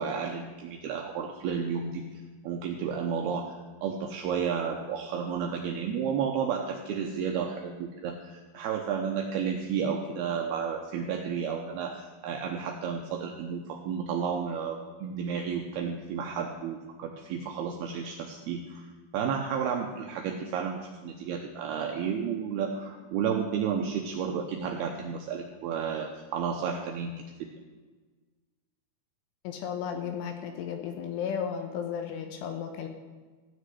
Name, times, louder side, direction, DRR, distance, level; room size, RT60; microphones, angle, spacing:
voice 1, 0.0-2.0 2.4-18.9 19.1-27.1 27.5-27.6, right 7 dB, 80° right, 2 dB, 2.2 m, -32 dB
voice 2, 29.4-32.9, left 7 dB, 80° left, 5 dB, 3.4 m, -34 dB
15.5 x 6.5 x 9.3 m, 1.4 s
omnidirectional pair, 5.8 m